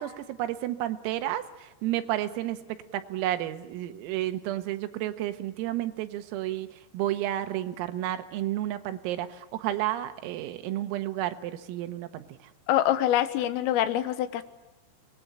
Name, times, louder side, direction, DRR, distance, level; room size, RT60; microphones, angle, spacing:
voice 1, 0.0-2.6 2.9-6.7 6.9-12.4, right 13 dB, 85° right, 8 dB, 4.0 m, -31 dB
voice 2, 12.7-14.4, left 12 dB, 80° left, 12 dB, 3.8 m, -25 dB
26.5 x 21.5 x 8.8 m, 1.1 s
omnidirectional pair, 6.0 m